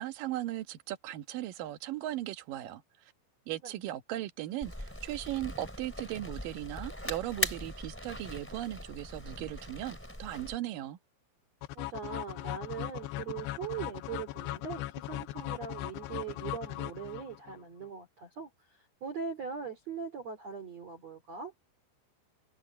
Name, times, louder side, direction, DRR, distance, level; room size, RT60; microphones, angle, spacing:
voice 1, 0.0-2.8 3.5-11.0, right 14 dB, 75° right, 2.0 m, -37 dB
sound 1, 4.6-10.6, equal, 5° left, 2.0 m, -40 dB
sound 2, 11.6-17.6, left 16 dB, 90° left, 2.4 m, -38 dB
voice 2, 11.7-21.5, right 6 dB, 40° right, 2.9 m, -41 dB
omnidirectional pair, 5.8 m